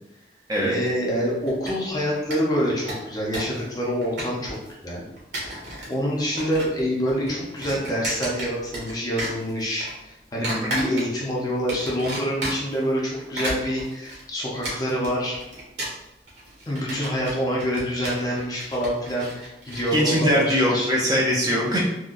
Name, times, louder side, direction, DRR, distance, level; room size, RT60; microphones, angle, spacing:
voice 1, 0.6-4.6 4.8-5.0 5.9-15.4 16.7-20.9, equal, 20° left, -4 dB, 0.6 m, -26 dB
sound 1, 1.5-2.0 2.3-2.4 2.7-3.6 3.8-4.7 5.2-5.9 6.2-6.8 7.1-8.9 9.2-9.9 10.4-11.3 11.7-12.8 13.2-19.9, right 1 dB, 85° right, 1.3 m, -33 dB
voice 2, 10.4-10.8 19.9-21.8, equal, 20° right, -4 dB, 0.5 m, -22 dB
3.7 x 2.1 x 2.5 m, 0.94 s
head